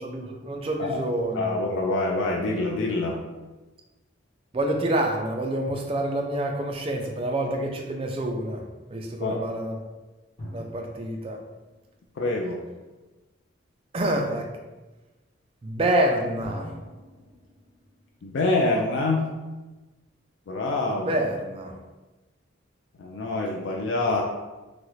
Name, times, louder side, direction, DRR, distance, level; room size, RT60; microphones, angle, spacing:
voice 1, 0.0-1.6 4.5-8.6 8.9-9.8 10.5-11.4 13.9-14.5 15.6-16.7 21.0-21.7, right 1 dB, 30° right, 2 dB, 0.3 m, -27 dB
voice 2, 1.3-3.2 9.2-9.4 12.2-12.6 18.2-19.3 20.5-21.2 23.0-24.2, left 2 dB, 65° left, 0 dB, 0.3 m, -26 dB
Drum, 5.7-7.4 10.4-12.9 16.4-19.6, equal, 30° left, 1.4 m, -45 dB
3.1 x 2.4 x 3.1 m, 1.2 s
head